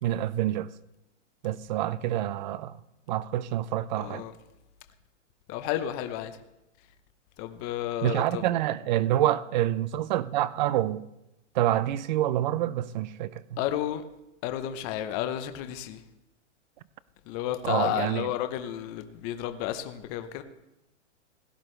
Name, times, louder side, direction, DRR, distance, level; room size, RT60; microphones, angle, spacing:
voice 1, 0.0-0.7 1.4-2.8 3.1-4.2 8.0-11.0 11.5-13.6 17.6-18.3, right 13 dB, 40° right, 0.5 m, -27 dB
voice 2, 4.0-4.3 5.5-6.4 7.4-8.4 13.6-14.0 14.4-16.0 17.3-20.4, left 11 dB, 30° left, 0.8 m, -32 dB
17.0 x 11.0 x 3.2 m
hypercardioid pair, 145°, 37 cm